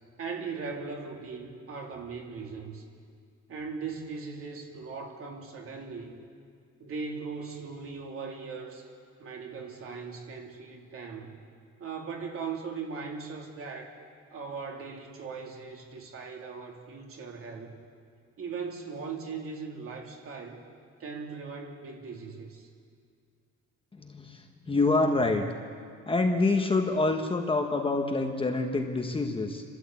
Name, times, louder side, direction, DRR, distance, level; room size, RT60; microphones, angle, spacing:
voice 1, 0.2-2.8 3.5-6.1 6.8-8.9 9.2-11.3 11.8-14.0 14.3-17.8 18.4-20.6 21.0-22.7, right 5 dB, 50° right, 1 dB, 3.0 m, -39 dB
voice 2, 23.9-25.5 26.1-29.6, left 3 dB, 20° left, 3 dB, 1.2 m, -26 dB
29.5 x 13.0 x 8.5 m, 2.2 s
cardioid pair, 170°, 29 cm